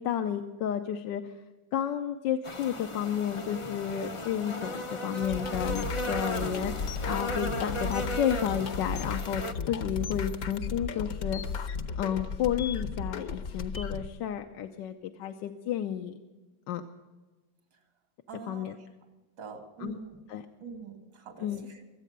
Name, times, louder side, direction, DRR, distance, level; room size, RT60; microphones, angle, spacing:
voice 1, 0.0-1.3 1.7-6.7 7.0-11.4 12.0-16.2 16.7-16.8 18.5-18.7 19.8-20.0 20.3-20.4 21.4-21.6, left 9 dB, 80° left, 6 dB, 1.4 m, -31 dB
sound 1, 2.4-9.5, equal, 40° left, 0.4 m, -36 dB
sound 2, 5.2-14.1, left 5 dB, 60° left, 1.2 m, -35 dB
voice 2, 18.3-18.8 19.4-20.2 20.6-21.8, right 5 dB, 75° right, 4 dB, 2.7 m, -44 dB
23.5 x 8.4 x 6.6 m, 1.2 s
omnidirectional pair, 1.9 m